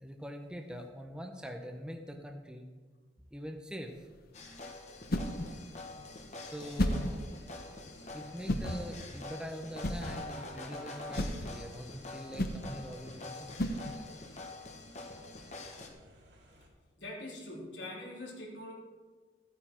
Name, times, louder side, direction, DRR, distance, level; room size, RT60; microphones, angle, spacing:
voice 1, 0.0-2.7 3.3-3.9 6.4-7.2 8.1-13.6, equal, 5° right, 3 dB, 0.8 m, -43 dB
sound 1, 3.8-14.3, equal, 55° left, 0.9 m, -37 dB
sound 2, 4.3-15.9, left 2 dB, 40° left, 1.3 m, -46 dB
sound 3, 7.6-16.7, equal, 75° right, 2.4 m, -61 dB
voice 2, 17.0-18.7, left 1 dB, 75° left, -3 dB, 3.2 m, -43 dB
14.0 x 9.1 x 4.5 m, 1.4 s
head